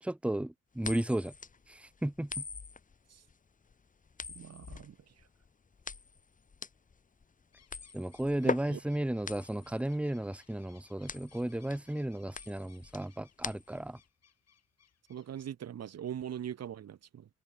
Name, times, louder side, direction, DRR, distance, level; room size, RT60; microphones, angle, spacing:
voice 1, 0.0-1.3 1.7-2.4 7.9-14.0, right 1 dB, 5° right, 1.1 m, -34 dB
sound 1, 0.8-14.0, left 5 dB, 25° left, 1.0 m, -42 dB
voice 2, 4.3-5.0 8.4-8.8 15.1-17.2, right 10 dB, 55° right, 1.0 m, -41 dB
sound 2, 7.5-15.5, left 8 dB, 55° left, 5.3 m, -66 dB
open air
cardioid pair, 105°, 30 cm